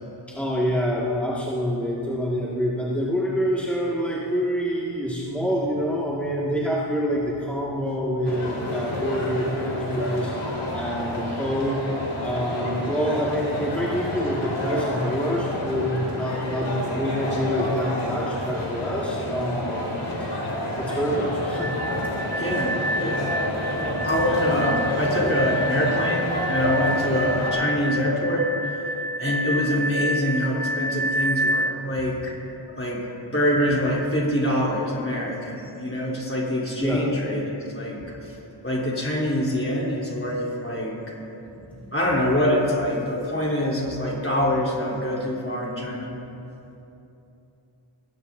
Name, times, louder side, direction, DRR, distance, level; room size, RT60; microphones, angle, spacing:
voice 1, 0.3-10.3 10.7-11.8 12.2-20.3 20.8-21.7 26.9-27.1 36.8-37.1 41.4-41.8, equal, 5° left, -7 dB, 2.0 m, -26 dB
sound 1, 8.2-27.5, left 1 dB, 80° left, 3.6 m, -29 dB
sound 2, 21.5-31.7, equal, 20° right, 0.4 m, -29 dB
voice 2, 22.4-23.3 24.0-28.9 29.2-32.3 32.8-33.0 33.3-38.0 38.2-38.3 38.6-40.9 41.9-46.2, left 1 dB, 25° left, -5 dB, 3.6 m, -25 dB
21.0 x 17.0 x 2.7 m, 3.0 s
wide cardioid pair, 65°, 48 cm